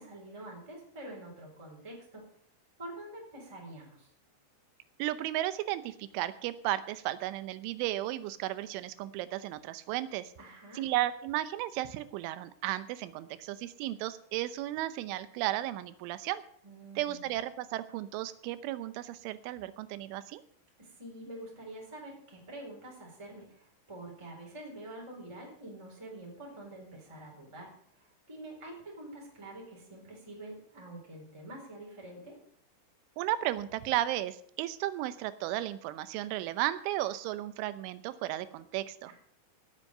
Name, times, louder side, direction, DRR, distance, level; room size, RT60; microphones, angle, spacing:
voice 1, 0.0-2.3 2.8-4.1 10.4-10.8 16.6-17.3 20.8-27.7 28.0-32.4 39.1-39.2, right 1 dB, 5° right, -1 dB, 3.5 m, -46 dB
voice 2, 5.0-10.3 10.8-16.4 17.0-20.4 33.2-39.1, right 14 dB, 85° right, 14 dB, 3.3 m, -34 dB
17.0 x 8.1 x 6.6 m, 0.63 s
omnidirectional pair, 5.5 m